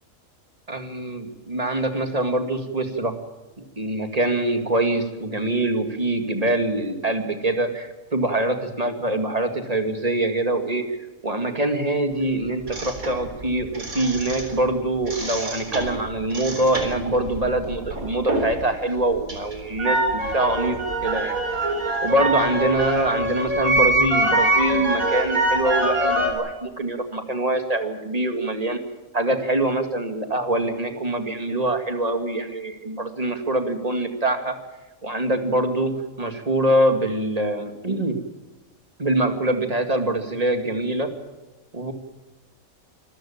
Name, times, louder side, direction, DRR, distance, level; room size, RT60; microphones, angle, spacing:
voice 1, 0.7-3.1 3.8-11.0 11.2-20.8 21.0-21.4 22.0-28.8 29.1-34.5 35.0-35.9 36.2-38.2 39.0-41.1 41.7-41.9, right 1 dB, 25° right, 7 dB, 2.4 m, -24 dB
sound 1, 12.7-14.7 15.0-18.7 19.0-26.3, right 1 dB, 70° right, 4.5 m, -24 dB
26.0 x 14.5 x 8.9 m, 1.1 s
omnidirectional pair, 1.5 m